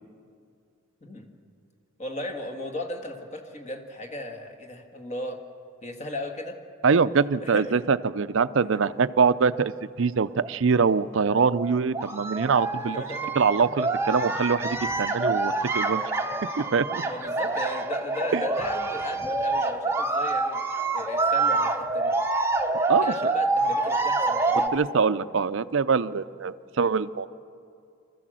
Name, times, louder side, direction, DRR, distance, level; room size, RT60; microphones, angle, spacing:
voice 1, 2.0-5.4 5.8-6.6 7.4-7.6 8.7-8.8 12.8-13.4 17.1-20.6 20.9-22.1 22.9-24.8, left 1 dB, 35° left, 4 dB, 1.7 m, -36 dB
voice 2, 6.8-9.7 10.0-13.0 13.4-16.0 16.6-17.0 18.3-18.4 22.9-23.1 24.7-27.3, right 5 dB, 65° right, 14 dB, 0.5 m, -23 dB
sound 1, 9.5-9.6 10.3-10.5 10.9-24.7, right 3 dB, 10° right, 0.8 m, -27 dB
25.5 x 14.0 x 7.6 m, 2.4 s
head